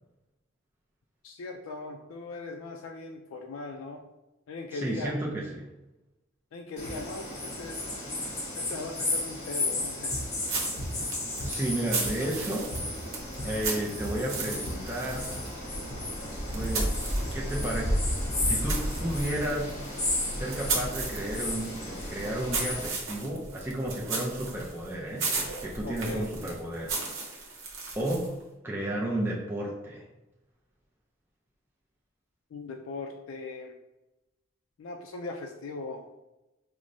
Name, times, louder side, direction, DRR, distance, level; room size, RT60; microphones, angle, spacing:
voice 1, 1.2-4.0 4.5-5.1 6.5-7.9 8.6-10.3 25.8-26.3 32.5-33.7 34.8-36.0, left 3 dB, 80° left, 2 dB, 0.3 m, -39 dB
voice 2, 4.7-5.7 11.4-12.7 13.4-15.3 16.5-18.0 18.4-19.7 20.3-27.0 27.3-27.5 27.9-28.3 28.6-30.0, right 1 dB, 10° right, -4 dB, 0.5 m, -32 dB
sound 1, 6.8-22.9, left 1 dB, 35° left, 0.9 m, -33 dB
sound 2, 10.1-10.3 10.8-11.0 11.4-12.4 12.7-12.9 13.2-13.7 14.0-14.9 15.2-15.5 15.9-16.1 16.6-16.9 17.2-19.2, equal, 40° right, 1.1 m, -38 dB
sound 3, 10.4-17.8 18.2-28.4, right 4 dB, 70° right, 0.8 m, -36 dB
4.6 x 2.0 x 2.6 m, 0.98 s
head